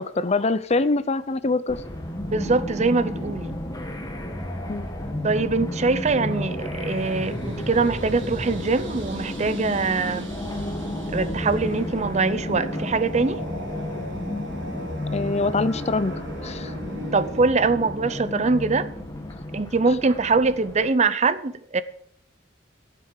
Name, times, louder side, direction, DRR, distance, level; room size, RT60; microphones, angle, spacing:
voice 1, 0.0-1.8 4.7-4.9 15.1-16.7 19.9-20.0, left 3 dB, 35° left, 0.6 m, -24 dB
sound 1, 1.7-20.9, left 1 dB, 20° left, 1.8 m, -32 dB
voice 2, 2.3-3.6 5.2-10.3 11.1-13.4 17.1-18.9 19.5-21.8, right 3 dB, 40° right, 0.6 m, -23 dB
sound 2, 7.0-17.5, equal, 75° right, 2.9 m, -37 dB
15.0 x 7.5 x 6.7 m
head